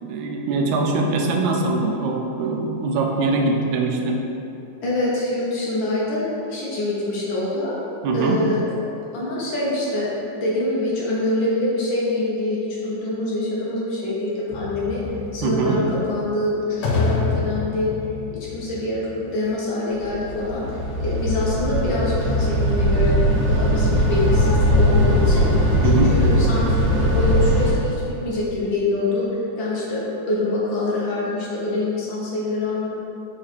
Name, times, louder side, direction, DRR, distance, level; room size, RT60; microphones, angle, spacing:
voice 1, 0.0-4.2 8.0-8.4 15.4-15.8 25.8-26.2, right 3 dB, 80° right, 1 dB, 2.0 m, -22 dB
voice 2, 4.8-7.8 8.1-8.8 9.1-10.1 10.4-15.0 15.3-17.9 18.3-23.1 23.4-25.7 26.1-29.3 29.6-33.0, left 2 dB, 60° left, -6 dB, 1.3 m, -25 dB
sound 1, 14.5-19.5, left 4 dB, 85° left, 2.2 m, -28 dB
sound 2, 19.9-27.7, equal, 60° right, 2.2 m, -19 dB
5.0 x 5.0 x 4.4 m, 2.8 s
omnidirectional pair, 3.4 m